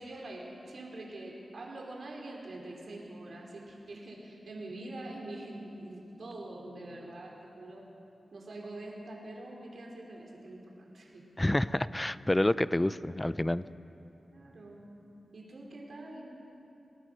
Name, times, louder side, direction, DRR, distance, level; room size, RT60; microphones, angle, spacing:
voice 1, 0.0-7.8 8.3-11.2 14.3-14.8 15.3-16.2, right 2 dB, 65° right, -1 dB, 4.6 m, -44 dB
voice 2, 11.4-13.6, left 1 dB, 15° left, 15 dB, 0.5 m, -28 dB
29.5 x 19.0 x 6.7 m, 2.8 s
wide cardioid pair, 100°, 0 cm